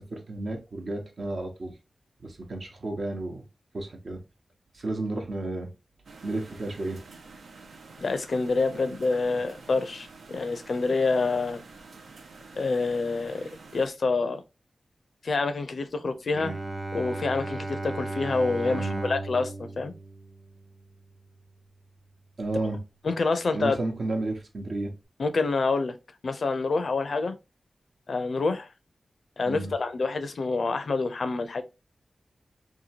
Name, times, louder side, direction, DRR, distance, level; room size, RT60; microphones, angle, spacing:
voice 1, 0.0-1.7 2.2-3.4 3.7-4.2 4.7-5.7 6.2-7.0 18.6-19.1 22.4-22.8 23.5-24.9 29.5-29.7, right 2 dB, 65° right, 0.8 m, -32 dB
sound 1, 6.0-13.9, right 3 dB, 90° right, 0.4 m, -48 dB
voice 2, 8.0-11.6 12.6-14.4 15.2-16.5 16.9-19.9 23.0-23.8 25.2-26.0 26.2-27.3 28.1-28.7 29.4-31.6, left 3 dB, 70° left, 0.4 m, -27 dB
Bowed string instrument, 16.3-22.0, right 2 dB, 40° right, 0.6 m, -36 dB
2.8 x 2.3 x 2.7 m
cardioid pair, 50°, 0 cm